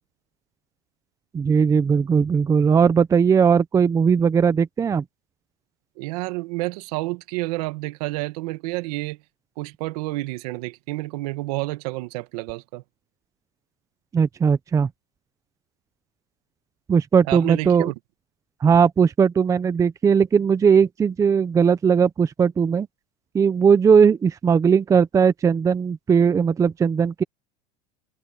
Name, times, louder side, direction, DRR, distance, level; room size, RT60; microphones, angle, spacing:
voice 1, 1.3-5.0 14.1-14.9 16.9-17.9 18.6-22.9 23.3-27.2, right 6 dB, 15° right, 0.6 m, -18 dB
voice 2, 6.0-9.2 9.6-12.8 17.3-17.9, right 21 dB, 70° right, 1.7 m, -29 dB
supercardioid pair, 145°, 20 cm